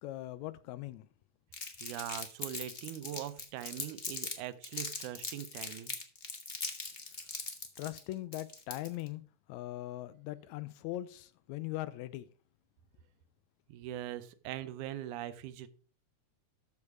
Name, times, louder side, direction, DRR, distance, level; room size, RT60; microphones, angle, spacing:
voice 1, 0.0-1.1 7.8-9.2 9.5-12.3, left 15 dB, 80° left, 1.7 m, -40 dB
Crumpling crinkling, 1.5-4.3 4.6-9.1, left 4 dB, 50° left, 0.6 m, -40 dB
voice 2, 1.8-5.9 13.7-15.7, right 12 dB, 90° right, 2.2 m, -42 dB
13.5 x 4.8 x 4.7 m
omnidirectional pair, 3.4 m